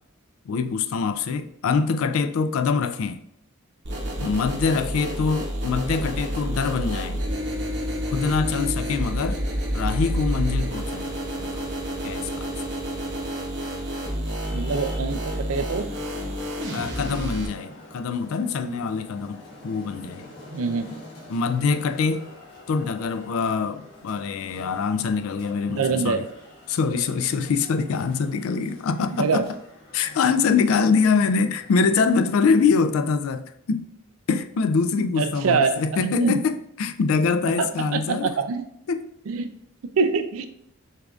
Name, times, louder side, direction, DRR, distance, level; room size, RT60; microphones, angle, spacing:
voice 1, 0.5-3.2 4.2-7.2 8.1-9.4 9.7-11.7 12.0-12.5 16.7-20.3 21.3-22.3 22.7-26.3 26.7-29.5 29.9-33.9 34.3-38.3 38.9-39.1, left 5 dB, 75° left, 0.3 m, -24 dB
sound 1, 3.8-17.5, equal, 55° right, 0.8 m, -29 dB
Traffic noise roadway noise, 14.3-33.0, left 1 dB, 55° left, 1.3 m, -47 dB
voice 2, 14.5-15.9 20.5-21.0 25.7-26.3 29.2-29.4 35.2-36.4 37.6-38.7 39.3-39.5 40.0-40.5, right 5 dB, 75° right, 0.4 m, -25 dB
6.4 x 2.5 x 2.4 m
head